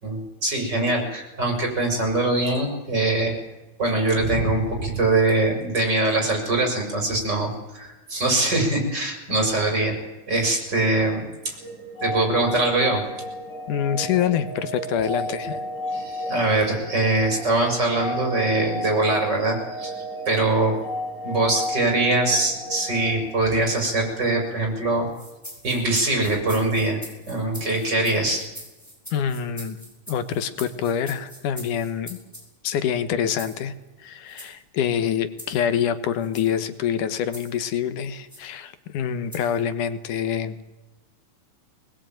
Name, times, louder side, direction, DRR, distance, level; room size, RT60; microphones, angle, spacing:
voice 1, 0.0-3.3 3.8-10.0 10.3-11.6 12.0-13.0 15.3-15.4 15.9-20.8 21.2-25.1 25.6-27.0 27.3-28.4, right 2 dB, 30° right, 2 dB, 6.4 m, -23 dB
sound 1, 11.6-24.3, equal, 20° left, 6.1 m, -33 dB
voice 2, 13.7-15.6 29.1-29.8 30.1-32.2 32.6-33.7 34.0-40.6, left 8 dB, 80° left, 12 dB, 2.7 m, -26 dB
sound 2, 25.1-32.5 33.4-33.6 34.3-34.5 35.4-35.6 36.2-36.6 37.3-37.6 38.3-38.5 39.3-39.6, equal, 5° left, 5.5 m, -43 dB
22.0 x 20.5 x 9.1 m, 1.1 s
omnidirectional pair, 3.6 m